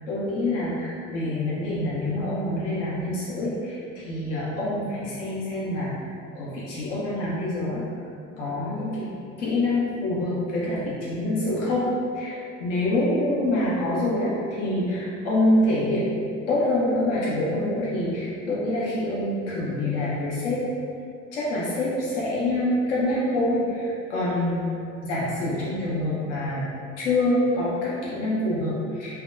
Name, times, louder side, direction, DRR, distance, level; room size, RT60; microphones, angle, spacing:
voice 1, 0.1-5.9 6.3-7.8 8.4-9.1 9.4-20.6 21.3-24.7 25.0-26.6 27.0-29.2, left 1 dB, 70° left, -7 dB, 0.6 m, -26 dB
2.7 x 2.1 x 2.3 m, 2.5 s
figure-of-eight pair, 60°, 37 cm